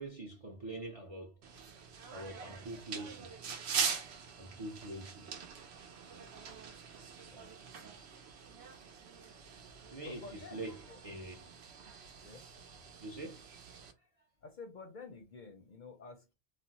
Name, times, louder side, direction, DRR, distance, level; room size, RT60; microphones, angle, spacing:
voice 1, 0.0-1.3 2.1-3.3 4.4-5.3 6.4-6.5 9.9-11.5 13.0-13.4, right 2 dB, 40° right, 0.5 m, -44 dB
sound 1, 1.4-13.9, right 6 dB, 75° right, 0.8 m, -43 dB
voice 2, 7.0-7.5 10.0-11.0 12.2-12.4 14.4-16.3, left 4 dB, 55° left, 0.6 m, -51 dB
2.5 x 2.0 x 3.9 m
omnidirectional pair, 1.1 m